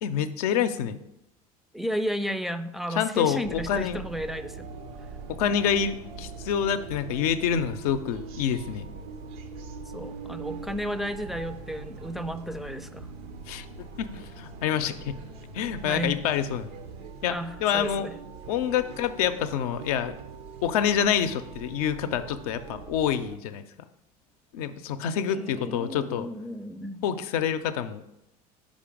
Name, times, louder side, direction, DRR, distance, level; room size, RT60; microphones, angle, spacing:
voice 1, 0.0-1.0 2.9-4.0 5.4-8.9 13.5-15.2 15.5-16.7 17.2-18.1 18.5-20.2 20.6-23.6 24.5-26.3 27.0-28.0, left 8 dB, 70° left, 10 dB, 0.5 m, -27 dB
voice 2, 1.7-4.7 9.9-13.1 15.8-16.2 17.3-18.1 25.3-27.0, equal, ahead, 8 dB, 0.3 m, -33 dB
sound 1, 3.2-17.0, left 5 dB, 90° right, 2.4 m, -49 dB
sound 2, 3.4-23.4, right 6 dB, 70° right, 0.6 m, -42 dB
5.2 x 5.0 x 5.0 m, 0.85 s
hypercardioid pair, 70°, 20 cm